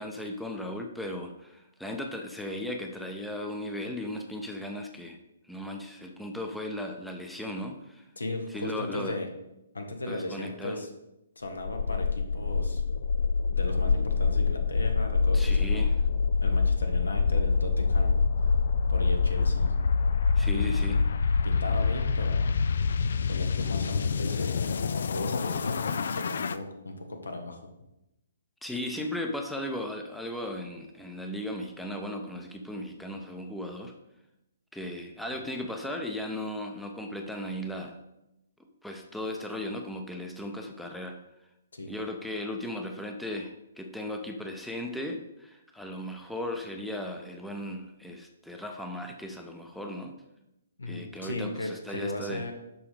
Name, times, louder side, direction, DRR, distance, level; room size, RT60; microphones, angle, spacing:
voice 1, 0.0-5.2 5.4-8.0 8.5-9.2 10.1-10.8 15.3-16.1 20.3-21.0 28.6-33.9 34.7-38.0 38.8-41.2 41.9-50.1 50.9-52.5, left 1 dB, ahead, 2 dB, 0.7 m, -36 dB
voice 2, 8.1-9.3 9.7-10.9 11.3-12.8 13.5-15.9 16.4-18.2 18.9-19.7 20.5-21.0 21.4-22.9 23.3-24.7 25.1-27.6 41.7-41.9 50.8-52.5, left 2 dB, 80° left, 4 dB, 1.3 m, -36 dB
sound 1, 11.6-26.5, left 4 dB, 60° left, 0.4 m, -26 dB
7.0 x 4.9 x 5.1 m, 0.90 s
figure-of-eight pair, 130°, 0 cm